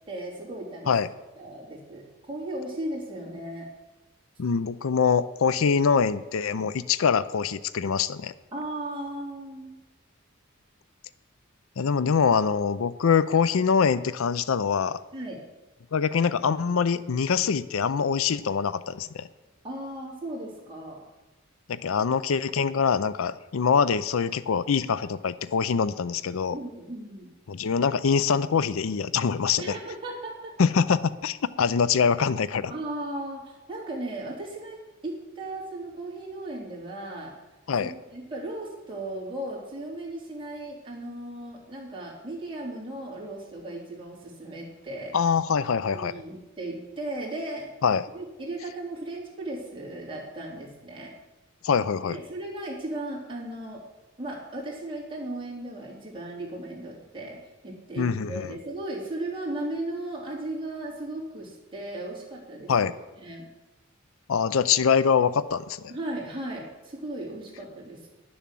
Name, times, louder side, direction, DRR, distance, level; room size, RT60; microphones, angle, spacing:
voice 1, 0.1-0.9 1.4-3.7 8.5-9.7 15.1-15.4 19.6-21.0 26.5-27.3 29.6-30.5 32.7-37.3 37.8-45.1 45.8-47.7 48.1-51.1 52.1-53.8 54.2-62.7 63.2-63.5 65.9-68.1, right 1 dB, 25° right, -4 dB, 3.5 m, -36 dB
voice 2, 4.4-8.3 11.8-15.0 15.9-19.3 21.7-26.6 27.5-29.7 30.6-32.7 37.7-37.9 45.1-46.1 47.8-48.1 51.6-52.2 58.0-58.5 62.7-62.9 64.3-65.9, left 6 dB, 85° left, 16 dB, 0.5 m, -24 dB
10.5 x 7.0 x 7.6 m, 1.1 s
head